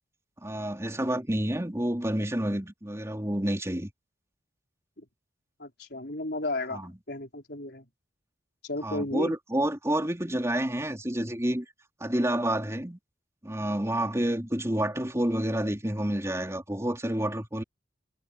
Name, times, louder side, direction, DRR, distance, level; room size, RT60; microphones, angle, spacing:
voice 1, 0.4-3.9 6.7-6.9 8.8-11.7 12.0-13.0 13.4-17.6, right 1 dB, 15° right, 4.1 m, -29 dB
voice 2, 5.6-7.9 8.6-9.3, left 2 dB, 60° left, 4.7 m, -34 dB
head